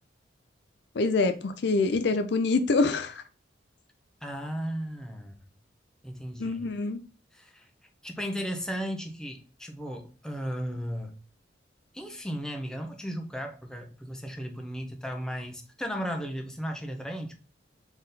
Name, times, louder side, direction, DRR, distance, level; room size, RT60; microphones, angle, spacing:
voice 1, 1.0-3.2 6.4-7.0, left 3 dB, 60° left, 0.5 m, -25 dB
voice 2, 4.2-5.3 6.0-6.7 7.3-7.7 8.0-11.1 11.9-17.3, equal, 5° left, 0.6 m, -35 dB
3.8 x 3.5 x 4.0 m
head